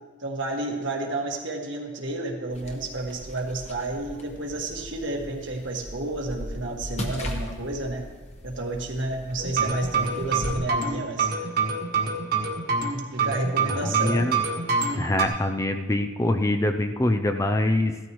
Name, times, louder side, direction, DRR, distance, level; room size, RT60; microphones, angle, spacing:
voice 1, 0.2-8.0 8.4-11.3 13.1-14.3, right 2 dB, 70° right, 0 dB, 1.8 m, -31 dB
sound 1, 2.5-10.6, equal, 35° left, 1.2 m, -38 dB
sound 2, 9.4-15.2, right 4 dB, 50° right, 1.6 m, -26 dB
voice 2, 13.8-14.4 15.0-18.0, left 1 dB, 15° left, 6 dB, 0.4 m, -24 dB
16.5 x 13.5 x 3.1 m, 1.3 s
head